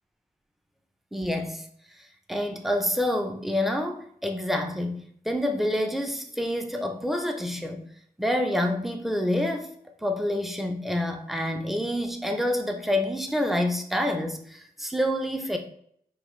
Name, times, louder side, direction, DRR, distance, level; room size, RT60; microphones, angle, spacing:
voice 1, 1.1-1.6 2.3-5.0 5.3-7.8 8.2-9.7 10.0-15.6, left 1 dB, ahead, 4 dB, 0.5 m, -27 dB
4.8 x 2.6 x 3.1 m, 0.65 s
wide cardioid pair, 95°, 16 cm